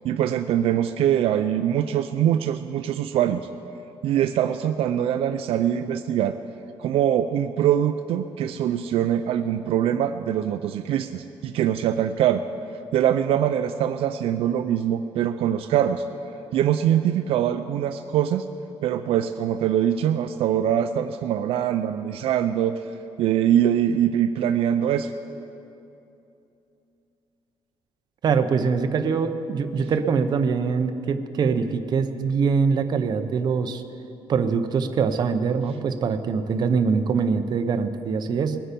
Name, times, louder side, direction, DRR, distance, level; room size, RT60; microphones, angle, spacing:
voice 1, 0.0-3.5 4.0-6.4 6.8-12.4 12.9-16.0 16.5-18.4 18.8-22.8 23.2-25.1, right 10 dB, 75° right, 9 dB, 0.4 m, -23 dB
voice 2, 28.2-33.8 34.3-38.6, right 5 dB, 45° right, 8 dB, 0.7 m, -23 dB
20.5 x 8.7 x 5.3 m, 2.8 s
cardioid pair, 155°, 10 cm